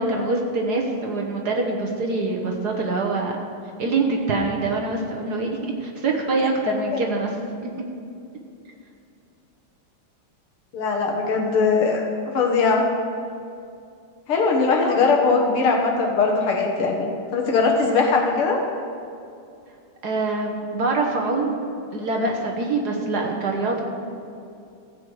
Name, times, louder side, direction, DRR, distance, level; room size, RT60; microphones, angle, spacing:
voice 1, 0.0-3.4 3.8-7.3 14.8-15.0 20.0-21.6 21.9-23.8, right 3 dB, 55° right, 0 dB, 1.5 m, -24 dB
voice 2, 10.7-12.8 14.3-16.9 17.3-18.6, left 4 dB, 80° left, 0 dB, 2.4 m, -20 dB
15.0 x 8.3 x 4.9 m, 2.5 s
omnidirectional pair, 2.4 m